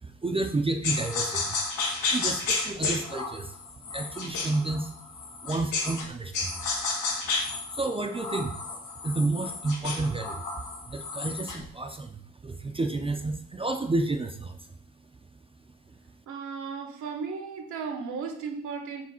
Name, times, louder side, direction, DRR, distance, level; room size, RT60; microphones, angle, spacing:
voice 1, 0.0-1.6 2.1-4.9 5.3-6.7 7.5-8.7 9.0-14.7, right 2 dB, 20° right, 0.5 m, -31 dB
sound 1, 0.8-6.1 6.3-11.6, left 4 dB, 85° left, 1.4 m, -32 dB
voice 2, 16.3-19.1, right 5 dB, 75° right, 1.1 m, -35 dB
5.0 x 3.5 x 5.5 m
cardioid pair, 90°, 30 cm